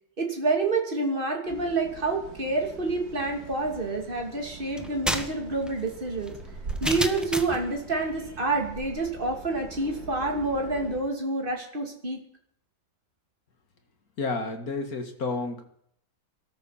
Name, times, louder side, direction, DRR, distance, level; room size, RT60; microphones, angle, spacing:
voice 1, 0.2-6.3 6.8-12.2, right 3 dB, 25° right, 1 dB, 3.0 m, -28 dB
sound 1, 1.5-11.0, right 3 dB, 50° right, 3.0 m, -43 dB
sound 2, 4.8-7.7, equal, ahead, 1.0 m, -31 dB
voice 2, 14.2-15.7, left 3 dB, 50° left, 6 dB, 2.3 m, -31 dB
21.5 x 13.5 x 4.3 m, 0.66 s
omnidirectional pair, 2.1 m